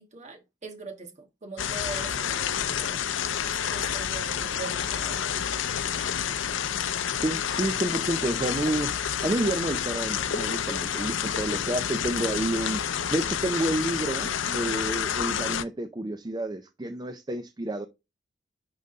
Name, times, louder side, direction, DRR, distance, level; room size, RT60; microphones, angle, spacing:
voice 1, 0.0-3.0 3.4-5.4, right 3 dB, 40° right, 1.6 m, -42 dB
sound 1, 1.6-15.6, left 8 dB, 90° left, 0.6 m, -29 dB
voice 2, 7.2-8.9 9.2-12.8 13.1-17.9, right 1 dB, 20° right, 0.5 m, -29 dB
10.5 x 3.9 x 3.9 m
head